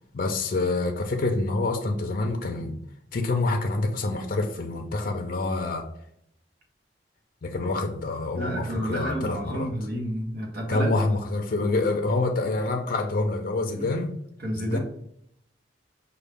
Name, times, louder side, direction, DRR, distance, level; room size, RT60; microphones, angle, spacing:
voice 1, 0.1-2.8 3.1-5.8 7.4-9.7 10.7-14.1 14.5-14.8, left 2 dB, 50° left, 4 dB, 0.5 m, -27 dB
voice 2, 8.3-10.9 13.8-13.9 14.4-14.8, equal, 55° right, 1 dB, 1.0 m, -30 dB
5.5 x 2.3 x 3.4 m, 0.71 s
head